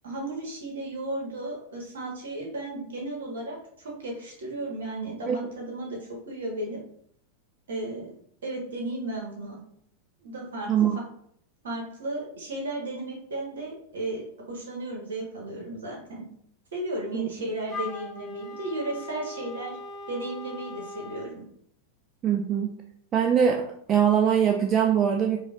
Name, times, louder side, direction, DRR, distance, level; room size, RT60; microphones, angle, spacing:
voice 1, 0.0-6.8 7.7-8.1 8.4-9.6 10.2-10.7 11.6-16.3 16.7-19.8 20.1-21.4, right 1 dB, 60° right, -1 dB, 1.2 m, -34 dB
Wind instrument woodwind instrument, 17.7-21.4, left 2 dB, 15° left, 0.7 m, -39 dB
voice 2, 22.2-22.7 23.1-23.6 23.9-25.4, right 8 dB, 30° right, 1 dB, 0.4 m, -22 dB
4.9 x 2.3 x 2.4 m, 0.66 s
figure-of-eight pair, 90°, 0 cm